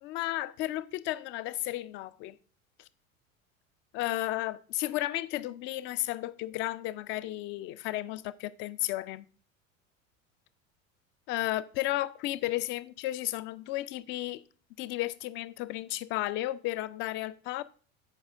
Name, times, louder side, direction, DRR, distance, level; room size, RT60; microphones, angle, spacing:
voice 1, 0.0-2.4 3.9-9.3 11.3-14.4 14.8-17.6, left 16 dB, 30° left, 0.4 m, -33 dB
13.5 x 5.4 x 2.5 m
figure-of-eight pair, 75°, 40 cm